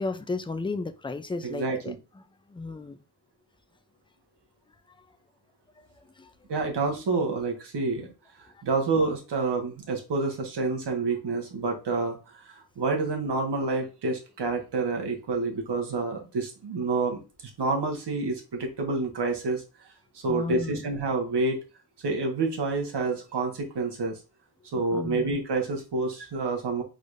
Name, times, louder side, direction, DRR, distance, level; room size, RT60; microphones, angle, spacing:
voice 1, 0.0-2.0 2.5-3.0 5.8-5.9 6.2-6.3 20.3-20.9 24.7-25.4, left 3 dB, 15° left, 0.4 m, -34 dB
voice 2, 1.4-1.9 6.5-8.1 8.6-17.2 17.6-19.6 20.1-21.6 22.0-24.2 24.7-26.8, right 3 dB, 80° right, 1.5 m, -28 dB
4.9 x 4.0 x 2.5 m
wide cardioid pair, 155°, 40 cm